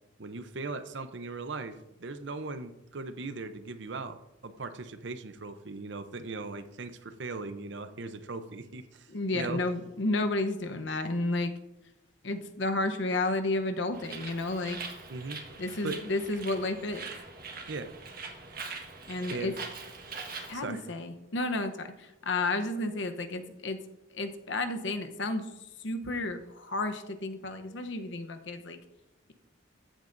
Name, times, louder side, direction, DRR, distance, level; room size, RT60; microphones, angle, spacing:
voice 1, 0.2-9.1 9.3-9.6 15.1-15.4 15.8-16.0 17.7-18.0 19.3-19.6 20.5-20.8, right 3 dB, 65° right, 10 dB, 0.7 m, -38 dB
voice 2, 9.1-11.5 12.2-14.8 15.6-17.1 19.1-19.5 20.2-23.8 24.1-25.5 25.8-28.8, left 2 dB, 70° left, 7 dB, 0.9 m, -32 dB
Bird, 13.9-20.5, right 4 dB, 50° right, 1.5 m, -42 dB
13.5 x 8.8 x 2.6 m, 0.93 s
head